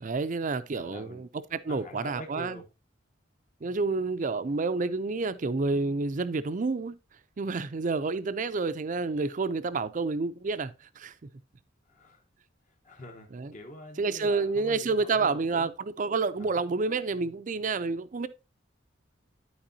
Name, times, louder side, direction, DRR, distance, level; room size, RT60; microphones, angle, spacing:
voice 1, 0.0-2.6 3.6-7.0 7.4-11.1 13.3-13.5 14.0-18.3, right 4 dB, 40° right, 0.5 m, -29 dB
voice 2, 0.7-1.2 1.7-2.7 11.9-12.2 12.8-15.7 16.4-16.6, left 1 dB, 40° left, 1.1 m, -45 dB
11.5 x 4.7 x 2.7 m
head